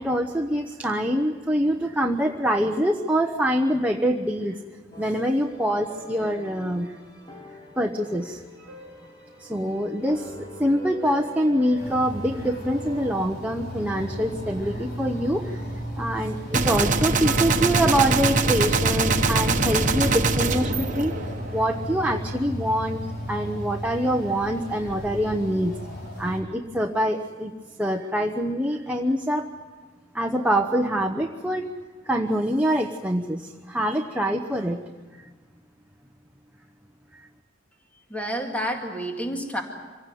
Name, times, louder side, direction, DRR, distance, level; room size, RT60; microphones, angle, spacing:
voice 1, 0.0-4.6 5.0-6.9 7.8-8.4 9.4-15.6 16.0-21.1 21.5-23.0 23.3-25.8 26.2-27.5 27.8-29.5 30.1-31.7 32.0-34.8 37.1-37.3, equal, 10° right, 1 dB, 0.9 m, -25 dB
sound 1, 4.9-13.1, right 1 dB, 25° left, 3.7 m, -43 dB
sound 2, 11.8-26.4, equal, 55° left, 4.9 m, -34 dB
Gunshot gunfire, 16.5-21.8, right 4 dB, 40° right, 1.3 m, -23 dB
voice 2, 38.1-39.6, equal, 10° left, 2 dB, 2.1 m, -29 dB
26.0 x 17.0 x 9.3 m, 1.4 s
head